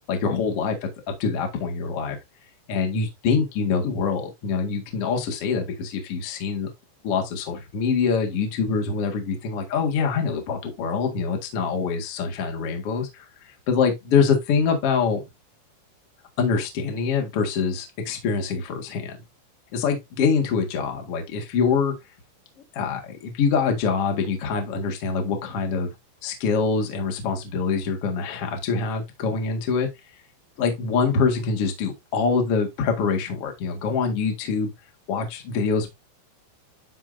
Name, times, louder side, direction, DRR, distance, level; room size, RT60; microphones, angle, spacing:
voice 1, 0.1-0.9 1.2-2.2 2.7-6.7 7.0-13.2 13.7-15.2 16.4-19.2 19.7-21.9 22.7-25.9 26.2-29.9 30.6-34.7 35.1-35.9, left 5 dB, 55° left, 1.6 m, -24 dB
12.0 x 4.7 x 2.6 m
omnidirectional pair, 5.6 m